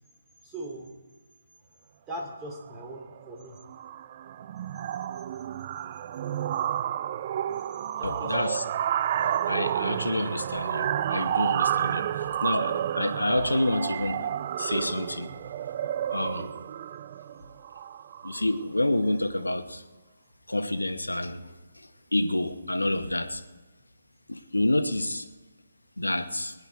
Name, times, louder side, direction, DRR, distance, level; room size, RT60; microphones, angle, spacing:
voice 1, 0.4-0.9 2.1-3.6 8.0-8.7 16.2-16.5, right 1 dB, 15° right, 0 dB, 2.8 m, -40 dB
sound 1, 2.6-2.9 3.2-3.4 3.7-18.6, right 10 dB, 35° right, 0.3 m, -30 dB
voice 2, 8.0-8.6 9.2-14.3 14.6-15.3 16.1-16.5 18.2-19.8 20.5-23.4 24.3-25.3 26.0-26.5, left 1 dB, 80° left, 9 dB, 1.1 m, -28 dB
20.5 x 9.7 x 4.7 m, 1.2 s
figure-of-eight pair, 140°, 0 cm